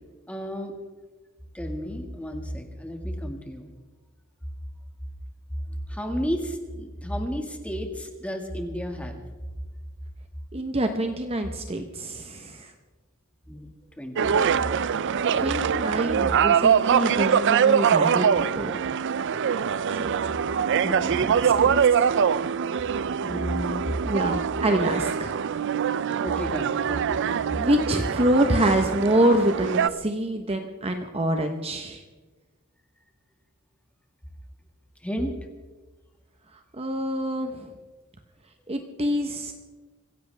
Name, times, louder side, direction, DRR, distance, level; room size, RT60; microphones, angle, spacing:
voice 1, 0.3-0.7 1.5-3.7 5.7-9.2 13.5-13.7 14.0-14.6 15.1-15.5 20.9-21.6 23.2-23.9 26.2-27.2 35.0-35.4 38.7-38.8, equal, 5° left, 3 dB, 1.9 m, -32 dB
voice 2, 10.5-12.7 15.4-18.7 19.9-20.1 20.8-22.1 24.0-25.4 27.6-32.0 36.7-37.7 38.7-39.5, right 1 dB, 30° right, 5 dB, 1.0 m, -26 dB
sound 1, 14.2-29.9, right 7 dB, 60° right, 0.4 m, -23 dB
24.5 x 15.5 x 3.5 m, 1.3 s
head